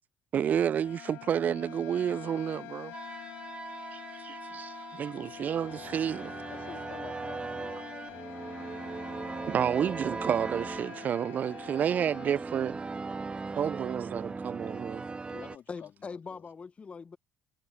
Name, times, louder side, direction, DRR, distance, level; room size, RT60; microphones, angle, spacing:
voice 1, 0.3-2.9 3.9-6.3 9.5-12.8 13.5-15.0, right 8 dB, 45° right, 0.3 m, -30 dB
sound 1, 0.6-12.5, left 21 dB, 70° left, 4.5 m, -47 dB
sound 2, 2.9-15.6, right 4 dB, 25° right, 1.7 m, -39 dB
voice 2, 6.5-9.6 9.8-10.0 15.3-16.5, left 9 dB, 55° left, 3.3 m, -51 dB
voice 3, 15.7-17.2, left 5 dB, 35° left, 0.9 m, -43 dB
hypercardioid pair, 55°, 4 cm